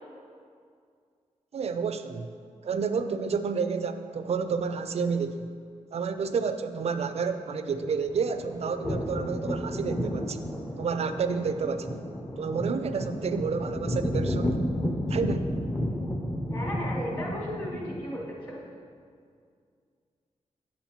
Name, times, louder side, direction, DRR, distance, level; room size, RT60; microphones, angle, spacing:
voice 1, 1.5-2.3 2.6-5.5 5.9-10.4 10.8-12.0 12.4-14.6 15.1-15.5, right 5 dB, 55° right, 9 dB, 0.4 m, -30 dB
sound 1, 7.8-18.2, equal, 15° left, 0.6 m, -32 dB
voice 2, 16.5-18.6, equal, 40° left, -5 dB, 2.0 m, -35 dB
8.6 x 7.2 x 2.9 m, 2.2 s
wide cardioid pair, 120°, 13 cm